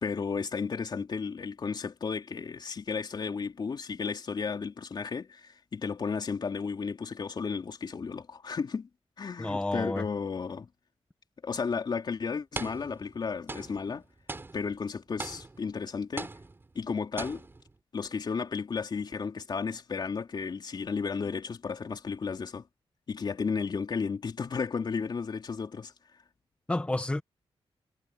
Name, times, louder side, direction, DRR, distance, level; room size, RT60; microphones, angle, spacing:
voice 1, 0.0-8.9 9.2-10.7 11.4-14.0 14.5-16.3 16.8-17.4 17.9-22.6 23.1-25.9, left 5 dB, 45° left, 3.6 m, -33 dB
voice 2, 9.4-10.0 26.7-27.2, left 1 dB, 10° left, 1.5 m, -30 dB
sound 1, 11.5-11.7 12.5-13.2 13.5-15.8 16.2-16.9 17.2-17.7, right 3 dB, 20° right, 4.4 m, -41 dB
wide cardioid pair, 165°, 10 cm